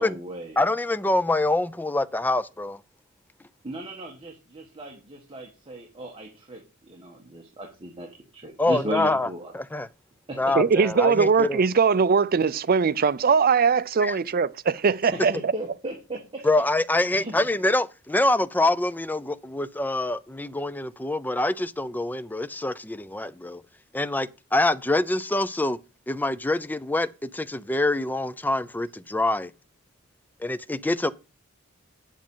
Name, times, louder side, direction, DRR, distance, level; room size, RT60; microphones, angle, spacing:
voice 1, 0.0-0.6 3.6-8.1 8.3-9.5 10.3-10.4 10.8-10.9 15.1-16.4 17.1-17.4, right 1 dB, 25° right, 1.6 m, -36 dB
voice 2, 0.6-2.8 8.6-9.3 9.5-9.9 10.4-11.6 14.0-14.2 16.4-23.6 23.9-25.8 26.1-29.5 30.4-31.1, left 2 dB, 10° left, 0.4 m, -25 dB
voice 3, 10.5-15.5, right 5 dB, 45° right, 0.5 m, -21 dB
8.7 x 7.4 x 5.5 m
head